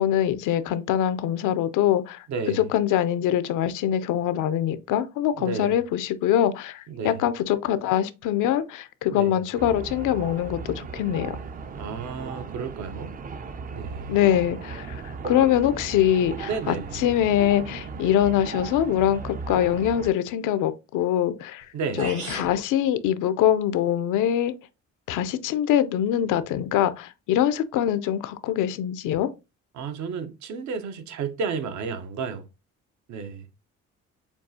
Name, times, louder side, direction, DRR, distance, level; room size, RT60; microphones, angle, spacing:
voice 1, 0.0-2.2 2.6-11.4 14.1-16.8 17.0-21.6 22.0-24.5 25.1-29.3, left 11 dB, 85° left, 0.5 m, -23 dB
voice 2, 2.3-2.7 5.4-5.8 6.9-7.3 9.1-9.4 11.7-13.2 13.7-14.2 16.4-17.0 21.7-22.1 29.7-32.5 33.1-33.5, right 5 dB, 70° right, 0.7 m, -32 dB
sound 1, 9.6-20.1, right 5 dB, 30° right, 0.4 m, -37 dB
sound 2, 21.6-21.7 22.0-22.6, right 4 dB, 85° right, 2.8 m, -34 dB
6.9 x 2.4 x 2.7 m
cardioid pair, 90°, 30 cm